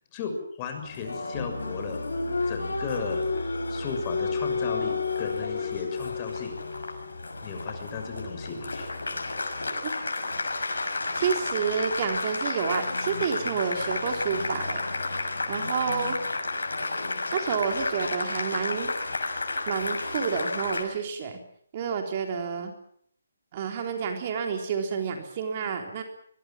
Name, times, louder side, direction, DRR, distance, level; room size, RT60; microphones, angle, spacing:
voice 1, 0.1-2.0 2.5-6.5 7.4-8.9, left 5 dB, 25° left, 5 dB, 6.7 m, -35 dB
Applause, 0.8-20.8, left 3 dB, 80° left, 6.6 m, -31 dB
voice 2, 11.2-14.8 15.5-16.2 17.3-18.9 19.7-21.4 21.7-22.7 23.5-26.0, right 6 dB, 35° right, 4 dB, 3.6 m, -29 dB
24.0 x 22.0 x 7.4 m, 0.64 s
figure-of-eight pair, 155°, 0 cm